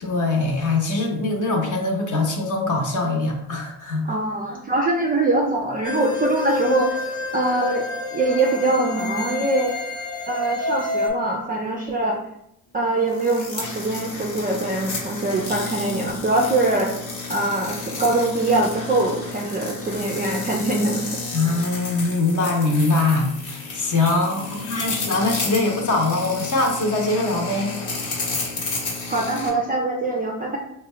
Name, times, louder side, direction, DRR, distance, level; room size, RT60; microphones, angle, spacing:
voice 1, 0.0-4.1 21.3-27.8, left 3 dB, 40° left, 1 dB, 0.8 m, -22 dB
voice 2, 4.0-7.8 8.1-9.7 10.3-12.2 12.7-16.9 17.3-21.1 29.1-30.6, right 2 dB, 20° right, -1 dB, 0.3 m, -23 dB
sound 1, 5.8-11.1, left 3 dB, 10° left, 0.8 m, -28 dB
sound 2, 13.1-29.5, left 3 dB, 65° left, 1.0 m, -32 dB
2.6 x 2.2 x 3.1 m, 0.77 s
hypercardioid pair, 60°, 50 cm